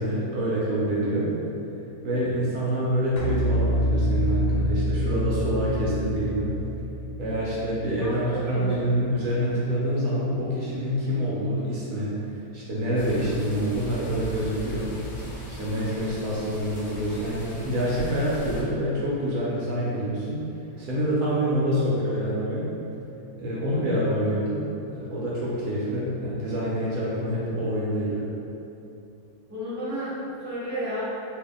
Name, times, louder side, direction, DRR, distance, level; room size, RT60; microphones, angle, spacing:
voice 1, 0.0-1.3 2.0-6.6 7.2-15.0 15.5-20.5 20.8-22.7 23.4-28.3, equal, 75° right, -7 dB, 1.1 m, -26 dB
sound 1, 3.2-8.4, equal, 85° left, 1.2 m, -26 dB
voice 2, 8.0-8.8 29.5-30.1 30.4-31.0, equal, 15° right, -12 dB, 0.9 m, -32 dB
sound 2, 12.9-18.6, equal, 50° left, 0.8 m, -38 dB
2.7 x 2.7 x 3.5 m, 2.9 s
omnidirectional pair, 1.6 m